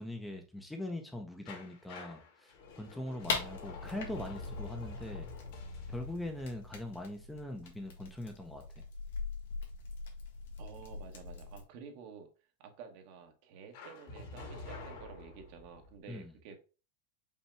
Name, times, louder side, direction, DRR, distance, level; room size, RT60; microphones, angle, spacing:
voice 1, 0.0-5.3 5.9-8.6 16.1-16.3, left 1 dB, 5° left, 4 dB, 0.6 m, -42 dB
sound 1, 1.5-8.2 13.7-16.0, left 3 dB, 60° left, 1.5 m, -49 dB
sound 2, 3.2-11.6, left 4 dB, 90° left, 1.5 m, -42 dB
voice 2, 10.6-12.3 12.6-16.6, right 6 dB, 55° right, 5 dB, 1.1 m, -51 dB
5.5 x 2.2 x 4.3 m, 0.34 s
supercardioid pair, 150°, 0 cm